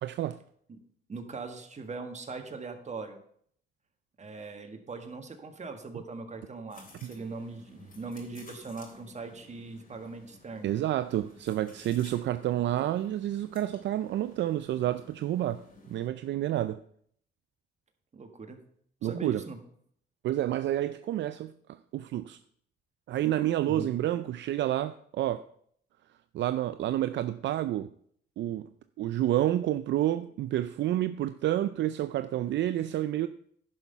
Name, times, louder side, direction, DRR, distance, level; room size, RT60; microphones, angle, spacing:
voice 1, 0.0-0.4 7.0-7.1 10.6-16.8 19.0-19.4 20.2-22.4 23.1-25.4 26.3-27.9 28.4-28.7 29.0-33.3, right 13 dB, 65° right, 0.4 m, -29 dB
voice 2, 1.1-3.2 4.2-10.7 18.1-18.6 19.0-19.6 23.6-23.9, right 4 dB, 35° right, 1.6 m, -40 dB
sound 1, 6.7-16.1, left 3 dB, 45° left, 3.2 m, -55 dB
10.5 x 5.7 x 5.5 m
cardioid pair, 90°, 20 cm